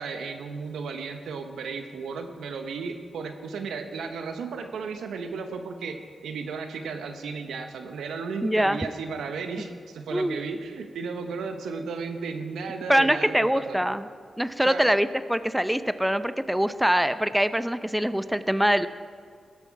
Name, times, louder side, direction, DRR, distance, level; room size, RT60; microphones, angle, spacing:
voice 1, 0.0-13.8 14.6-14.8, right 5 dB, 90° right, 6 dB, 0.8 m, -34 dB
voice 2, 8.4-8.8 10.1-10.4 12.9-14.1 14.4-18.9, equal, 5° right, 12 dB, 0.5 m, -23 dB
17.5 x 7.1 x 4.7 m, 2.1 s
supercardioid pair, 45°, 0 cm